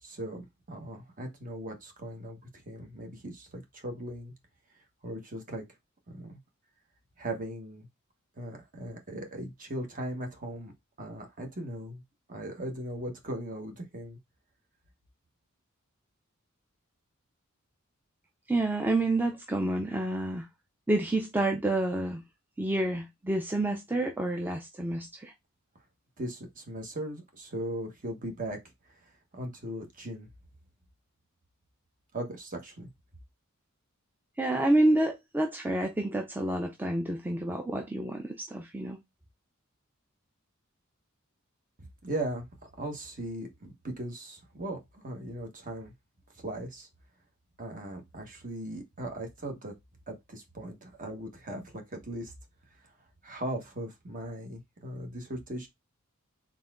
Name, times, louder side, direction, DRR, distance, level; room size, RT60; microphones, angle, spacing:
voice 1, 0.0-4.3 5.0-5.6 6.1-6.4 7.2-7.9 8.4-10.7 11.0-12.0 12.3-14.2 26.2-28.6 29.0-30.3 32.1-32.9 42.0-45.9 46.3-46.9 47.6-49.7 50.1-52.3 52.8-52.9 53.2-55.7, right 1 dB, 40° right, 1.2 m, -38 dB
voice 2, 18.5-20.5 20.9-22.2 22.6-25.3 34.4-39.0, right 1 dB, 10° right, 0.5 m, -28 dB
4.0 x 3.7 x 2.4 m
head